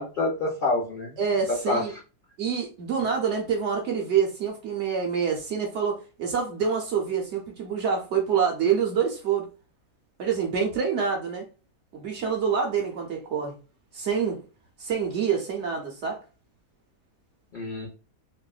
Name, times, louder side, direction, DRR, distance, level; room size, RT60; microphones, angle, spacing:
voice 1, 0.0-1.2 1.5-2.0 17.5-17.9, left 2 dB, 70° left, 0.5 m, -27 dB
voice 2, 1.2-1.9 2.4-9.5 10.2-11.5 11.9-13.6 13.9-14.4 14.8-16.2, right 6 dB, 65° right, 0.7 m, -26 dB
3.4 x 2.1 x 2.3 m
omnidirectional pair, 1.7 m